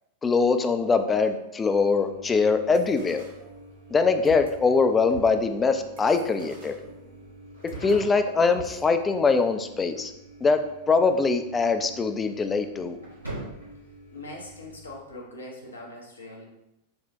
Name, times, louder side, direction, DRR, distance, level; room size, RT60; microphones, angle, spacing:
voice 1, 0.2-3.3 3.9-6.7 7.8-10.1 10.4-10.6 10.9-13.0, left 4 dB, 15° left, 7 dB, 0.3 m, -22 dB
sound 1, 1.7-14.9, right 1 dB, 80° right, 1.2 m, -45 dB
sound 2, 2.7-4.0 4.2-8.0 8.5-8.8, right 5 dB, 60° right, 0.6 m, -45 dB
voice 2, 14.1-16.4, left 2 dB, 75° left, -2 dB, 0.7 m, -41 dB
4.3 x 2.1 x 3.5 m, 0.87 s
figure-of-eight pair, 90°, 0 cm